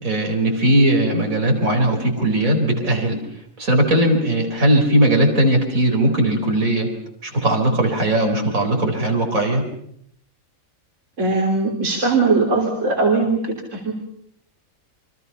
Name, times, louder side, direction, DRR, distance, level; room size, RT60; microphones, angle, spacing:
voice 1, 0.0-3.2 3.6-6.9 7.2-9.6, right 1 dB, 80° right, 2 dB, 4.8 m, -18 dB
voice 2, 11.2-13.4 13.7-13.9, right 3 dB, 60° right, 0 dB, 3.6 m, -19 dB
28.5 x 24.0 x 5.6 m, 0.69 s
omnidirectional pair, 1.4 m